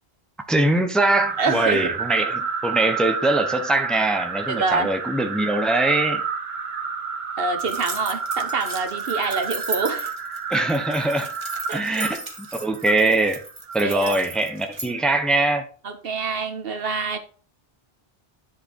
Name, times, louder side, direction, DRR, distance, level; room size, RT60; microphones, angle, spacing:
voice 1, 0.5-6.2 10.5-11.3 11.7-13.4 13.7-15.7, right 2 dB, ahead, 6 dB, 0.9 m, -22 dB
sound 1, 1.1-14.4, right 6 dB, 85° right, 1.3 m, -30 dB
voice 2, 1.4-1.9 4.5-4.9 7.4-10.1 11.7-12.1 13.8-14.2 15.8-17.2, right 4 dB, 65° right, 7 dB, 1.3 m, -26 dB
sound 2, 7.6-14.9, right 2 dB, 30° right, 1.3 m, -36 dB
10.0 x 5.0 x 4.6 m, 0.40 s
omnidirectional pair, 1.0 m